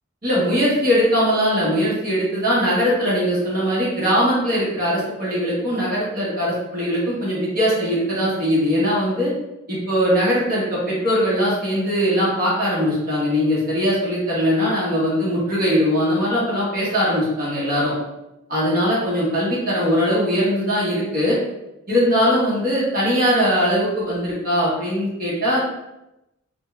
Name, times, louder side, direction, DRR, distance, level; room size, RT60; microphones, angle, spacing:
voice 1, 0.2-9.3 9.7-17.9 18.5-21.4 21.9-25.6, equal, 45° right, -7 dB, 1.1 m, -20 dB
3.7 x 2.2 x 2.4 m, 0.93 s
head